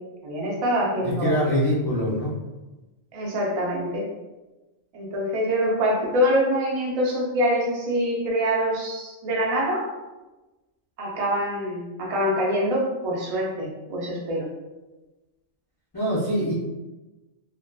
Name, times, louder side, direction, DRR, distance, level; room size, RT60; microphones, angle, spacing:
voice 1, 0.2-1.4 3.1-4.1 4.9-9.9 11.0-14.5, equal, 50° right, -3 dB, 0.4 m, -25 dB
voice 2, 1.0-2.3 15.9-16.5, equal, 40° left, -10 dB, 0.3 m, -24 dB
2.5 x 2.3 x 2.2 m, 1.1 s
omnidirectional pair, 1.3 m